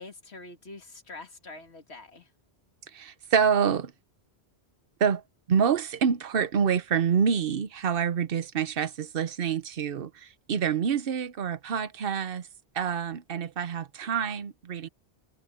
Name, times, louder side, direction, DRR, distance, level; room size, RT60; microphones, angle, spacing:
voice 1, 0.0-2.3, left 3 dB, 85° left, 2.3 m, -45 dB
voice 2, 2.9-3.9 5.0-5.2 5.5-12.5 12.7-14.9, right 7 dB, 60° right, 1.0 m, -27 dB
omnidirectional pair, 1.1 m